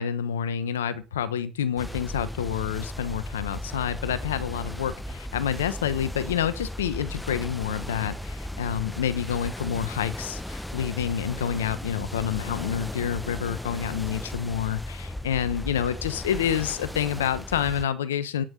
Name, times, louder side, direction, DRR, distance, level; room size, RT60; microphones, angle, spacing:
voice 1, 0.0-18.4, left 9 dB, 80° left, 1.0 m, -28 dB
sound 1, 1.8-17.9, left 1 dB, 5° left, 0.8 m, -36 dB
9.4 x 7.7 x 8.1 m
hypercardioid pair, 60°, 0 cm